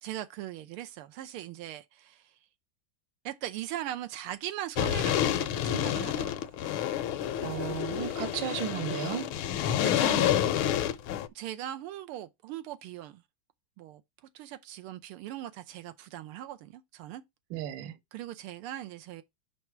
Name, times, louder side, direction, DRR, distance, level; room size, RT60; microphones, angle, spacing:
voice 1, 0.0-2.3 3.2-6.3 9.8-10.4 11.3-13.2 13.8-14.0 14.3-17.2 18.1-19.2, right 12 dB, 85° right, 1.6 m, -39 dB
sound 1, 4.8-11.3, left 10 dB, 80° left, 1.5 m, -29 dB
voice 2, 7.4-9.3 17.5-17.9, right 11 dB, 70° right, 1.5 m, -34 dB
5.5 x 4.7 x 5.7 m
omnidirectional pair, 2.4 m